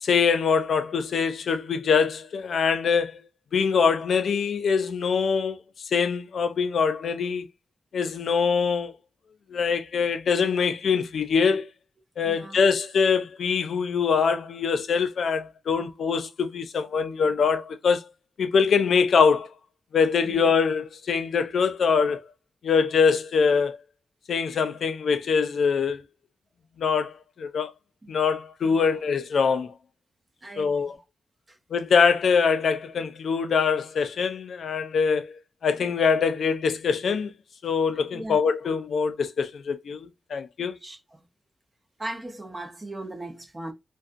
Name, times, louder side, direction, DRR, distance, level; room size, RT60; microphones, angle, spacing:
voice 1, 0.0-3.2 3.5-7.5 7.9-8.9 9.5-11.7 12.2-18.1 18.4-19.5 19.9-22.2 22.6-23.8 24.3-26.0 26.8-27.7 28.1-29.7 30.6-30.9 31.7-37.3 37.6-40.8, left 5 dB, 80° left, 0.4 m, -23 dB
voice 2, 12.2-12.7 20.2-20.5 28.0-28.1 28.7-29.0 30.4-30.9 31.5-31.6 38.1-38.4 40.8-41.2 42.0-43.7, right 2 dB, 20° right, 0.6 m, -38 dB
2.4 x 2.2 x 2.4 m
wide cardioid pair, 130°, 0 cm